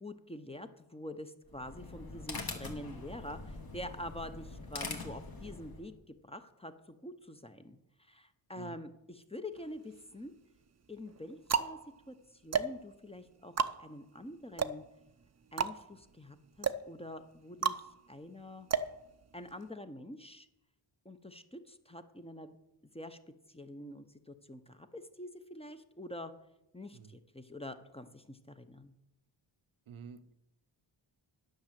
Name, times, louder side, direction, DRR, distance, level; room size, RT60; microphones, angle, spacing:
voice 1, 0.0-10.3 10.9-11.8 12.1-14.8 15.5-18.7 19.3-20.5 21.0-22.6 22.9-23.2 23.5-26.3 26.7-28.9, left 1 dB, 10° left, 9 dB, 0.7 m, -46 dB
sound 1, 1.4-5.9, left 3 dB, 50° left, 1.8 m, -43 dB
sound 2, 9.6-10.3 10.9-19.7, right 6 dB, 35° right, 0.5 m, -35 dB
voice 2, 29.9-30.3, right 6 dB, 80° right, 10 dB, 0.8 m, -49 dB
10.5 x 6.2 x 7.4 m, 0.87 s
wide cardioid pair, 95°, 48 cm